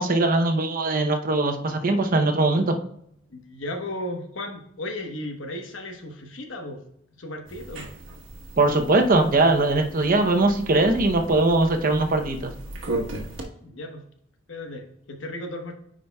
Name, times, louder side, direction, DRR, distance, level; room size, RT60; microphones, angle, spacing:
voice 1, 0.0-2.8 8.6-12.5, right 2 dB, 45° right, 5 dB, 0.7 m, -21 dB
voice 2, 3.3-6.8 7.2-7.9 13.6-14.0 14.5-15.7, left 1 dB, 75° left, 4 dB, 1.1 m, -35 dB
sound 1, 7.5-13.4, right 1 dB, 75° right, 1.2 m, -36 dB
9.5 x 5.0 x 2.3 m, 0.72 s
head